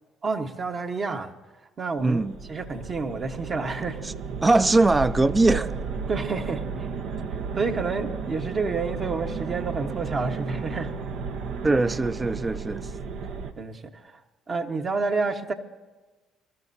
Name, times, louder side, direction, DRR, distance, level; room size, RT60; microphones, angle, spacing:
voice 1, 0.2-1.3 1.8-2.2 2.5-4.0 5.5-5.7 6.1-6.9 7.6-10.9 13.6-14.2 14.5-15.5, right 4 dB, 45° right, 1.4 m, -29 dB
voice 2, 2.0-2.4 4.4-5.7 11.6-12.8, right 2 dB, 25° right, 0.5 m, -21 dB
sound 1, 2.0-13.5, right 5 dB, 70° right, 0.8 m, -33 dB
23.0 x 13.5 x 2.7 m
hypercardioid pair, 55°, 0 cm